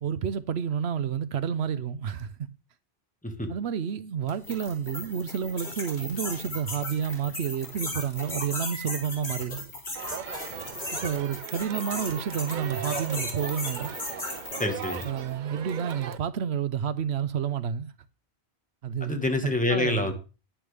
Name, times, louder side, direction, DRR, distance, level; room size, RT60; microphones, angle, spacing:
voice 1, 0.0-2.5 3.5-9.6 10.9-14.0 15.0-17.9 18.8-19.2 19.7-20.1, right 8 dB, 75° right, 1.0 m, -30 dB
sound 1, 4.3-15.2, left 2 dB, 80° left, 4.2 m, -36 dB
Crowd, 10.0-16.2, right 8 dB, 55° right, 0.6 m, -38 dB
voice 2, 14.6-15.0 19.0-20.1, left 2 dB, 5° left, 1.6 m, -27 dB
10.5 x 10.5 x 3.4 m
omnidirectional pair, 1.1 m